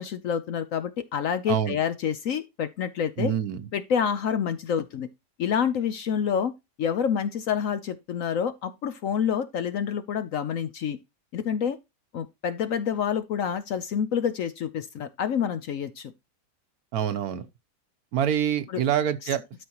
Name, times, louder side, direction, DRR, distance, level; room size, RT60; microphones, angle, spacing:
voice 1, 0.0-3.3 3.7-5.1 5.4-6.5 6.8-11.0 11.3-11.8 12.1-16.1 18.7-18.8, left 8 dB, 65° left, 0.9 m, -28 dB
voice 2, 1.5-1.8 3.2-3.7 16.9-17.4 18.1-19.4, right 9 dB, 65° right, 1.2 m, -26 dB
12.5 x 5.2 x 2.9 m
omnidirectional pair, 1.8 m